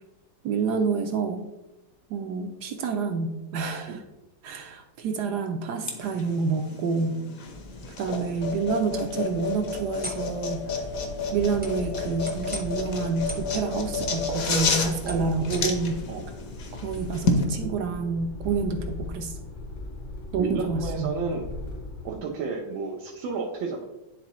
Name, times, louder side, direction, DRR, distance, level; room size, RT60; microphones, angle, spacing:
voice 1, 0.4-1.5 2.1-4.0 4.4-7.2 8.0-10.6 11.3-16.0 16.7-19.3 20.3-21.2, right 4 dB, 70° right, 5 dB, 1.1 m, -28 dB
sound 1, 5.8-17.4, left 4 dB, 55° left, 1.2 m, -31 dB
sound 2, 7.4-16.0, equal, 10° right, 0.6 m, -43 dB
sound 3, 10.7-22.2, left 2 dB, 40° left, 0.7 m, -39 dB
voice 2, 20.4-21.5 22.0-23.8, right 5 dB, 90° right, -2 dB, 1.6 m, -31 dB
10.5 x 3.7 x 3.0 m, 0.98 s
omnidirectional pair, 2.0 m